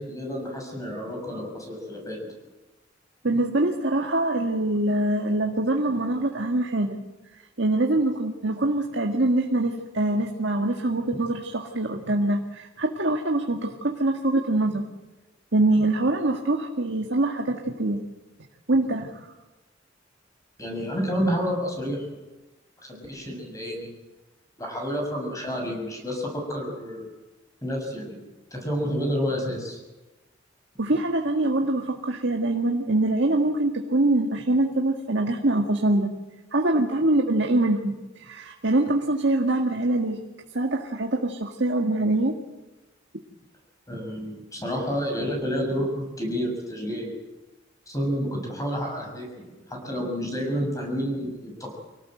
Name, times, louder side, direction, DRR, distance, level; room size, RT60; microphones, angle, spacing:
voice 1, 0.0-2.2 20.6-22.1 22.9-23.9 24.6-27.1 27.6-28.2 28.5-29.8 43.9-47.1 47.9-51.7, equal, 20° left, 1 dB, 6.9 m, -29 dB
voice 2, 3.2-7.0 7.6-14.8 15.5-18.0 18.7-19.1 30.8-36.1 36.5-37.9 38.2-40.2 40.5-42.4, right 2 dB, 65° right, 2 dB, 1.9 m, -24 dB
26.0 x 18.0 x 7.9 m, 1.1 s
head